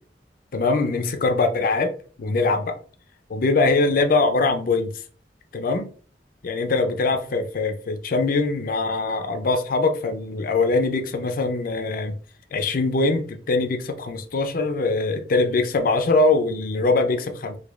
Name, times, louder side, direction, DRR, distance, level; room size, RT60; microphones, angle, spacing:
voice 1, 0.5-1.9 2.2-2.7 3.3-4.9 5.5-5.9 6.4-12.2 12.5-17.6, left 3 dB, 55° left, 0.5 m, -22 dB
4.8 x 2.3 x 2.3 m
head